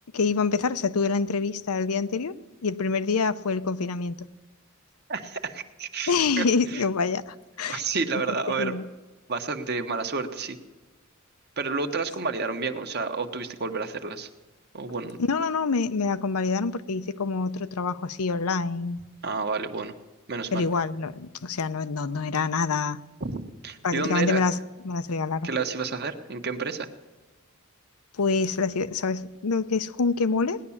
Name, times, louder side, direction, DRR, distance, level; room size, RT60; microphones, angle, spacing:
voice 1, 0.1-2.3 2.6-4.2 6.1-7.8 8.5-8.8 15.2-19.0 20.5-23.0 23.8-24.6 24.8-25.5 28.2-30.6, left 4 dB, 90° left, 13 dB, 0.7 m, -26 dB
voice 2, 5.1-6.8 7.7-8.7 9.3-10.6 11.6-14.3 14.7-15.2 19.2-19.9 20.3-20.7 23.2-24.4 25.4-26.9, right 4 dB, 45° right, 6 dB, 1.2 m, -30 dB
18.5 x 11.0 x 7.2 m, 1.2 s
head